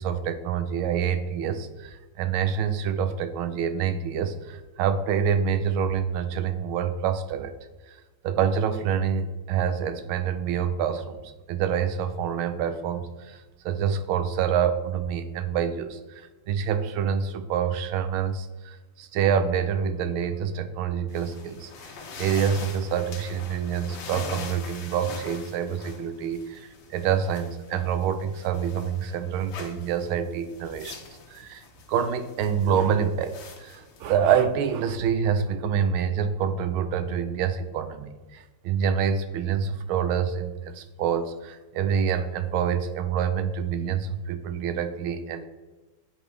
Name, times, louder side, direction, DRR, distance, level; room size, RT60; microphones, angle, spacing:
voice 1, 0.0-7.5 7.9-8.0 8.2-11.2 11.5-31.0 31.3-45.4, right 7 dB, 80° right, 10 dB, 1.4 m, -27 dB
sound 1, 21.1-34.8, left 4 dB, 65° left, 1.6 m, -43 dB
8.3 x 5.2 x 3.2 m, 1.2 s
omnidirectional pair, 2.3 m